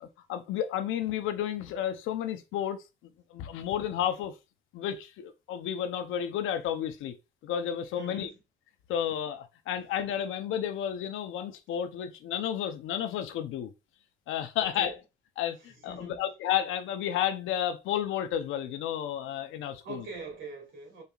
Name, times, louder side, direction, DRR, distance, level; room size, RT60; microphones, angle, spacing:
voice 1, 0.0-2.8 3.3-4.3 4.7-7.1 7.4-8.3 8.9-13.7 14.3-14.9 15.4-20.0, left 10 dB, 90° left, 0.7 m, -32 dB
voice 2, 7.9-8.4 9.7-9.8 14.6-15.0 15.6-16.3 19.8-21.0, right 3 dB, 70° right, 2.5 m, -43 dB
5.4 x 4.1 x 2.3 m
cardioid pair, 90°, 20 cm